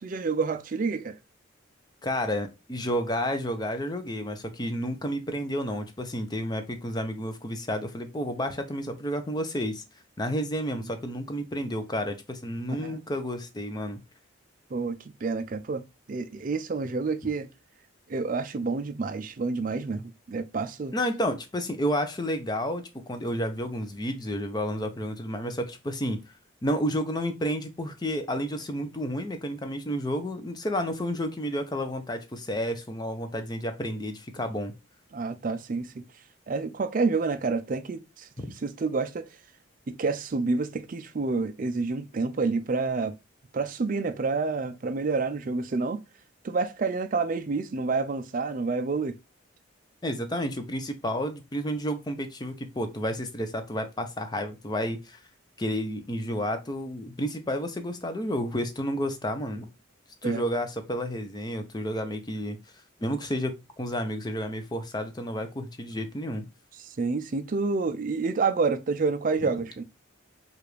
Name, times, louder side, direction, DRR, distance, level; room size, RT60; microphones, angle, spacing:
voice 1, 0.0-1.2 12.7-13.0 14.7-15.8 16.1-17.5 18.1-20.9 35.1-36.0 36.5-38.3 38.6-39.3 39.9-43.1 43.5-46.0 46.4-49.2 60.2-60.4 66.8-69.8, right 4 dB, 40° right, 0.4 m, -28 dB
voice 2, 2.0-9.8 10.2-14.0 20.9-26.2 26.6-34.7 38.4-38.5 50.0-55.2 55.6-59.7 60.2-62.6 63.0-66.5, equal, 20° left, 0.5 m, -31 dB
4.8 x 2.5 x 3.1 m
head